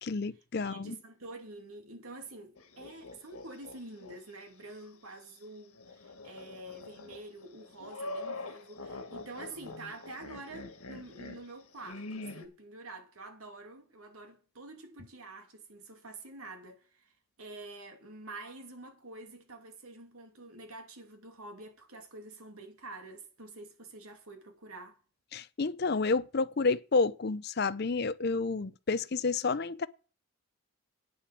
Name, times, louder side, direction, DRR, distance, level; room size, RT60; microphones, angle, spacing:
voice 1, 0.0-1.0 25.3-29.9, left 4 dB, 50° left, 0.5 m, -30 dB
voice 2, 0.6-25.0, right 2 dB, 80° right, 2.5 m, -47 dB
sound 1, 2.6-4.2 4.6-4.7 5.7-12.5, left 2 dB, 85° left, 1.8 m, -44 dB
9.4 x 6.9 x 7.5 m
head